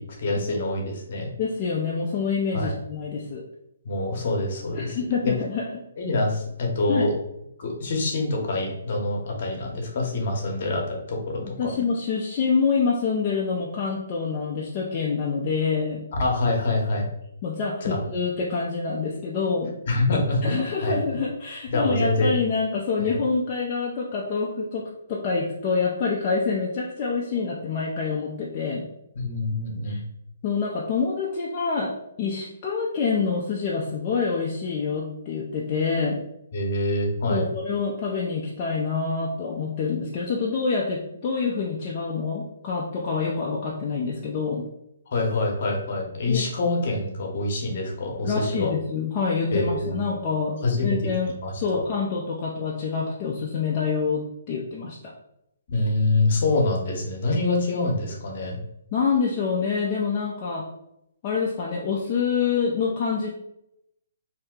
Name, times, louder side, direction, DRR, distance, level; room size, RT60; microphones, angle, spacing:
voice 1, 0.0-1.3 2.5-2.7 3.8-5.0 5.2-5.3 6.0-7.1 7.6-11.7 16.2-17.1 17.8-18.0 19.9-21.0 21.7-22.3 23.0-23.2 29.1-30.0 36.5-37.5 45.1-48.7 49.5-50.0 50.6-51.0 51.4-51.8 55.7-58.6, left 2 dB, 55° left, 0 dB, 0.9 m, -25 dB
voice 2, 1.4-3.4 4.7-5.7 6.9-7.1 11.4-16.0 17.4-19.7 20.4-28.8 29.9-30.0 30.4-36.2 37.3-44.7 46.3-46.4 48.2-55.1 58.9-60.7 61.2-63.3, left 5 dB, 30° left, -4 dB, 0.5 m, -26 dB
2.7 x 2.2 x 3.6 m, 0.80 s
hypercardioid pair, 150°, 0 cm